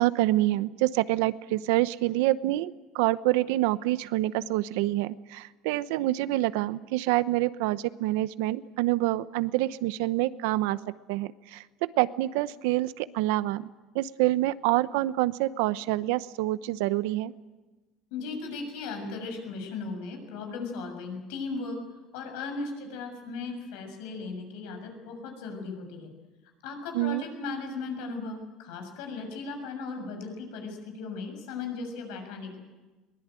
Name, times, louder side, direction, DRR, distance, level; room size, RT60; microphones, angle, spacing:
voice 1, 0.0-10.8 11.1-13.7 13.9-17.3 26.9-27.2, right 16 dB, 90° right, 15 dB, 0.8 m, -27 dB
voice 2, 18.1-21.8 22.1-26.1 26.6-32.6, left 4 dB, 85° left, 5 dB, 6.8 m, -37 dB
23.0 x 20.5 x 9.1 m, 1.2 s
cardioid pair, 160°, 0 cm